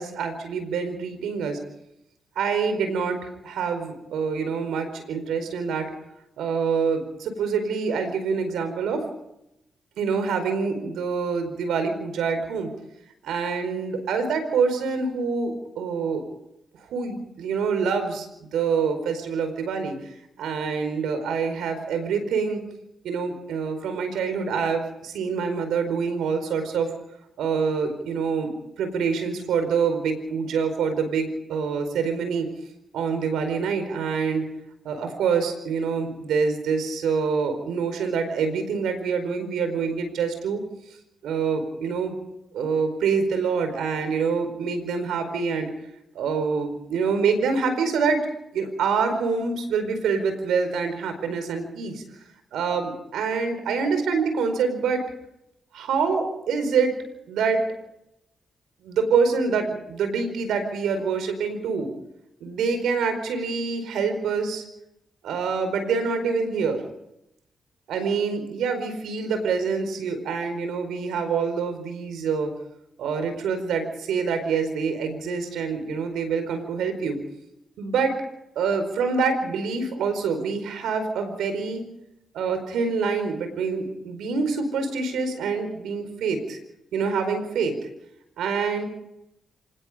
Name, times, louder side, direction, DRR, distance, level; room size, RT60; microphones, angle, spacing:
voice 1, 0.0-1.6 2.3-5.9 6.4-9.0 10.0-12.7 13.2-16.2 16.9-19.9 20.4-22.6 23.0-26.9 27.4-32.5 32.9-34.5 34.8-40.6 41.2-42.2 42.5-45.7 46.1-48.2 48.5-52.0 52.5-55.0 55.7-56.9 57.3-57.6 58.8-61.9 62.4-64.6 65.2-66.8 67.9-72.5 73.0-77.2 77.8-78.2 78.5-81.8 82.3-86.6 86.9-87.7 88.4-88.8, right 5 dB, 80° right, 8 dB, 4.7 m, -26 dB
26.0 x 20.0 x 5.1 m, 0.84 s
supercardioid pair, 45°, 0 cm